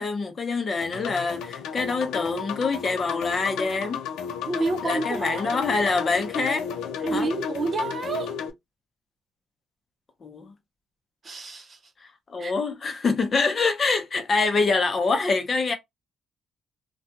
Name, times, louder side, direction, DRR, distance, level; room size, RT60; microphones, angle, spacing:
voice 1, 0.0-4.0 4.8-6.7 7.1-7.3 10.2-10.5 12.0-15.7, left 4 dB, 40° left, 0.7 m, -25 dB
sound 1, 0.8-8.5, left 7 dB, 90° left, 0.4 m, -33 dB
voice 2, 4.4-5.6 6.3-6.5 7.0-8.3 11.2-11.8 12.4-12.5, right 3 dB, 40° right, 0.7 m, -29 dB
2.5 x 2.2 x 2.7 m
cardioid pair, 90°, 0 cm